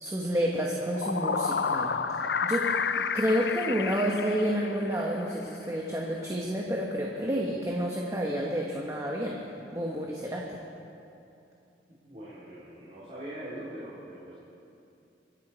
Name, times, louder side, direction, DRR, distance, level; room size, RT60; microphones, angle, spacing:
voice 1, 0.0-1.9 2.4-9.4 9.7-10.6, equal, 15° right, -2 dB, 1.2 m, -30 dB
sound 1, 0.7-5.1, left 5 dB, 65° left, 0.6 m, -30 dB
voice 2, 12.0-14.4, right 1 dB, 40° right, -9 dB, 3.0 m, -42 dB
25.5 x 10.5 x 4.4 m, 2.7 s
head